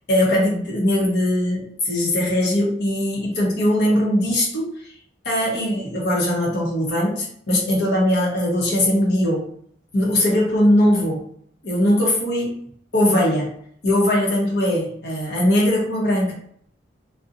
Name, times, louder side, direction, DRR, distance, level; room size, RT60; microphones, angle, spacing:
voice 1, 0.1-4.7 5.2-9.5 9.9-11.2 11.6-12.6 12.9-13.5 13.8-16.3, left 1 dB, 70° left, -2 dB, 0.8 m, -20 dB
2.5 x 2.1 x 2.6 m, 0.64 s
head